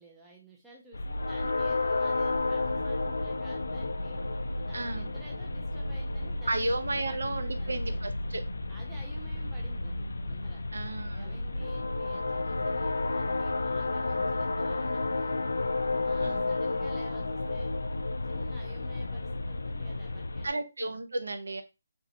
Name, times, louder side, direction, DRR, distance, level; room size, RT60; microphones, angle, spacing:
voice 1, 0.0-4.2 4.6-6.7 7.0-8.0 8.7-10.7 11.1-15.4 16.0-17.7 18.2-20.6, right 1 dB, 5° right, -4 dB, 0.3 m, -52 dB
sound 1, 0.9-20.5, left 2 dB, 90° left, 0.3 m, -32 dB
voice 2, 4.7-5.1 6.5-8.4 10.7-11.4 12.1-12.3 16.2-16.5 20.4-21.6, right 2 dB, 80° right, 7 dB, 0.5 m, -33 dB
3.1 x 2.6 x 2.8 m, 0.26 s
hypercardioid pair, 180°, 0 cm